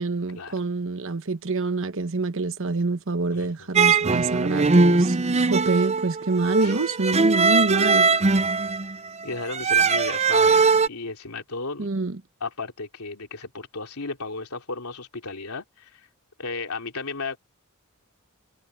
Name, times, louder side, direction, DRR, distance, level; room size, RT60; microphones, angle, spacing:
voice 1, 0.0-8.1 11.8-12.2, right 3 dB, 65° right, 1.1 m, -26 dB
voice 2, 3.3-3.7 6.6-6.8 9.2-11.9 12.4-16.1 16.4-17.4, left 3 dB, 90° left, 3.0 m, -34 dB
sound 1, 3.8-10.9, right 4 dB, 30° right, 0.6 m, -20 dB
head